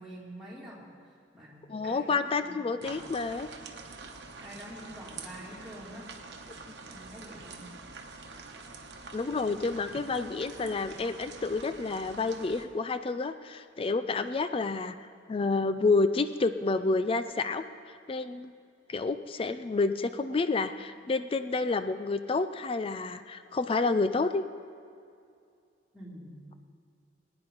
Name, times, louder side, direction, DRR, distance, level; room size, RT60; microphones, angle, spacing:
voice 1, 0.0-3.0 4.4-6.1 6.8-7.7 25.9-26.4, equal, ahead, -7 dB, 2.8 m, -47 dB
voice 2, 1.7-3.5 9.1-15.0 15.3-17.6 18.1-18.5 18.9-24.4, left 3 dB, 30° left, 11 dB, 0.4 m, -29 dB
sound 1, 2.8-12.6, right 4 dB, 60° right, 1.1 m, -46 dB
20.0 x 9.7 x 3.9 m, 2.4 s
head